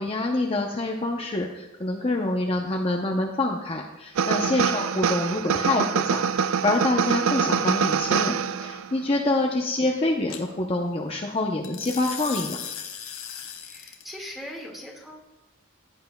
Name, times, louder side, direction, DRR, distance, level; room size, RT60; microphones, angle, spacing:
voice 1, 0.0-12.6, left 2 dB, 30° left, 0 dB, 0.7 m, -26 dB
sound 1, 4.2-8.9, right 7 dB, 85° right, 0.4 m, -25 dB
sound 2, 6.4-6.8 10.3-10.4 11.6-14.1, left 8 dB, 90° left, 1.2 m, -37 dB
voice 2, 13.6-15.2, left 1 dB, ahead, -1 dB, 1.8 m, -40 dB
16.0 x 9.2 x 2.2 m, 1.1 s
head